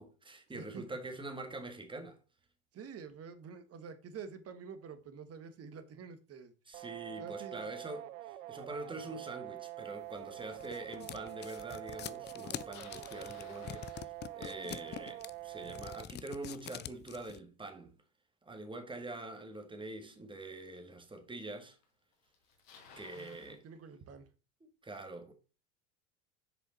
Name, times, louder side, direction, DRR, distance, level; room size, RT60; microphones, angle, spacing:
voice 1, 0.0-2.2 6.7-17.9 18.4-21.8 23.0-23.6 24.6-25.3, right 2 dB, 10° right, 1.7 m, -45 dB
voice 2, 0.5-0.9 2.7-6.5 7.2-7.7 23.1-24.3, right 6 dB, 35° right, 1.4 m, -48 dB
sound 1, 6.7-16.1, right 15 dB, 75° right, 0.7 m, -46 dB
sound 2, 10.1-17.4, left 11 dB, 25° left, 0.4 m, -45 dB
Bicycle, 12.6-14.7 19.8-19.9 20.7-20.8 21.8-21.9 22.1-23.6, left 5 dB, 70° left, 2.2 m, -57 dB
6.9 x 5.1 x 4.3 m
hypercardioid pair, 80°, 40 cm